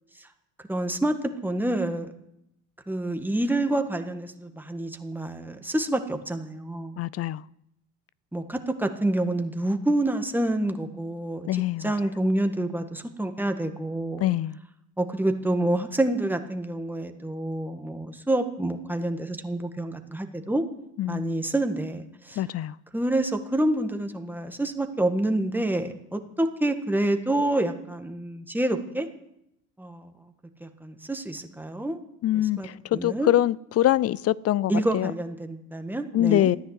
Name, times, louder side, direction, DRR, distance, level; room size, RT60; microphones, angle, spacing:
voice 1, 0.7-1.2 1.4-2.1 2.9-7.0 8.3-11.5 11.8-14.3 15.0-20.6 21.1-22.4 22.9-29.1 29.8-30.1 30.6-32.0 32.6-32.7 32.9-33.3 34.7-36.5, right 1 dB, 5° right, 1.7 m, -27 dB
voice 2, 7.0-7.4 11.5-11.9 14.2-14.6 21.0-21.4 22.4-22.7 32.2-35.1 36.1-36.6, left 13 dB, 40° left, 0.5 m, -24 dB
14.5 x 10.0 x 8.2 m
supercardioid pair, 85°, 39 cm